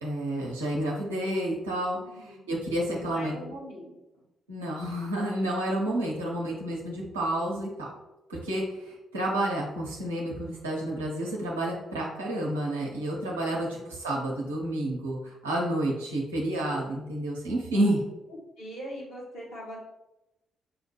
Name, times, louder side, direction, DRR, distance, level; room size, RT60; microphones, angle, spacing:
voice 1, 0.0-3.3 4.5-7.9 8.3-18.0, right 1 dB, 80° right, -3 dB, 0.7 m, -30 dB
voice 2, 2.0-2.5 2.9-3.9 13.5-13.9 17.7-17.9 18.6-19.8, equal, 70° left, -7 dB, 1.4 m, -42 dB
5.9 x 2.1 x 3.3 m, 0.94 s
figure-of-eight pair, 40°, 0 cm